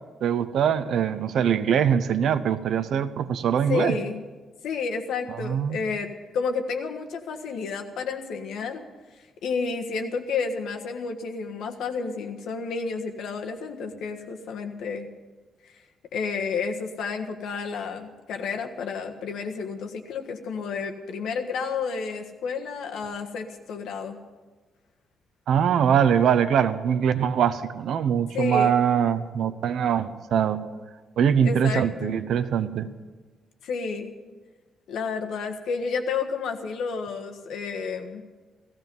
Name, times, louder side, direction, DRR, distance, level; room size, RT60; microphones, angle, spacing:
voice 1, 0.2-4.0 5.3-5.8 25.5-30.6 31.2-32.9, right 8 dB, 65° right, 12 dB, 0.8 m, -23 dB
voice 2, 3.7-4.2 4.6-8.8 9.1-15.1 15.6-15.8 16.1-24.2 28.3-28.7 31.4-32.2 33.6-34.1 34.9-38.2, left 5 dB, 85° left, 4 dB, 1.5 m, -31 dB
16.0 x 15.5 x 5.5 m, 1.3 s
cardioid pair, 165°, 0 cm